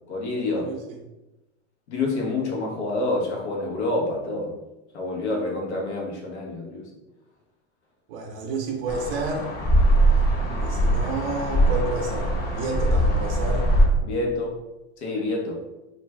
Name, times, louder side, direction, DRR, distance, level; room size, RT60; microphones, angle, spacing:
voice 1, 0.1-0.7 1.9-4.5 4.9-6.8 10.4-10.6 14.0-14.5 15.0-15.6, left 2 dB, 85° left, -1 dB, 0.9 m, -27 dB
voice 2, 0.6-1.0 8.1-9.5 10.6-13.7, right 3 dB, 60° right, 1 dB, 0.6 m, -30 dB
sound 1, 8.9-13.9, right 1 dB, 30° left, 0.7 m, -21 dB
2.5 x 2.3 x 3.1 m, 1.0 s
hypercardioid pair, 110°, 33 cm